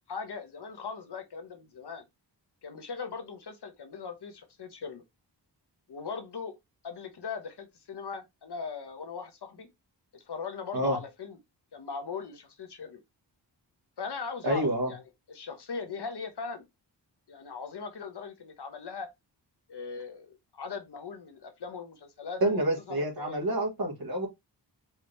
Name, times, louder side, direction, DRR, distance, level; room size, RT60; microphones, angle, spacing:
voice 1, 0.1-2.0 2.6-5.0 5.9-6.5 6.8-9.7 10.1-11.4 11.7-13.0 14.0-15.0 15.3-16.6 17.3-19.1 19.7-23.4, left 5 dB, 65° left, 1.0 m, -39 dB
voice 2, 14.4-14.9 22.4-24.3, right 1 dB, 55° right, 1.6 m, -28 dB
4.7 x 3.0 x 3.3 m
wide cardioid pair, 135°, 43 cm